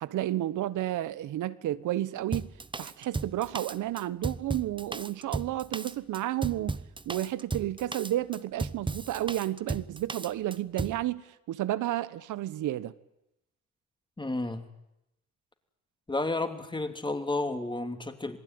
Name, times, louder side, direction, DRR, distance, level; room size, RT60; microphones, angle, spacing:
voice 1, 0.0-2.5 2.8-6.8 7.1-12.9, right 14 dB, 80° right, 1.2 m, -31 dB
Drum kit, 2.3-11.0, right 3 dB, 15° right, 0.9 m, -35 dB
voice 2, 14.2-14.7 16.1-18.4, left 2 dB, 15° left, 3.1 m, -31 dB
27.5 x 19.5 x 9.7 m
cardioid pair, 90°, 30 cm